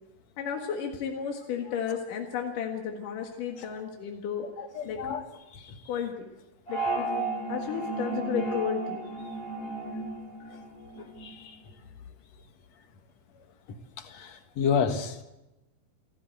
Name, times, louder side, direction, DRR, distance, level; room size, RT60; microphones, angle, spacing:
voice 1, 0.4-4.5 4.8-5.1 5.9-6.1 6.7-7.2 7.5-9.0, left 8 dB, 80° left, 3.4 m, -33 dB
voice 2, 4.6-5.3 5.5-5.7 11.0-11.6 14.0-15.2, left 6 dB, 60° left, 2.6 m, -31 dB
sound 1, 6.7-11.3, right 3 dB, 30° left, 3.7 m, -33 dB
27.5 x 14.5 x 8.2 m
omnidirectional pair, 3.7 m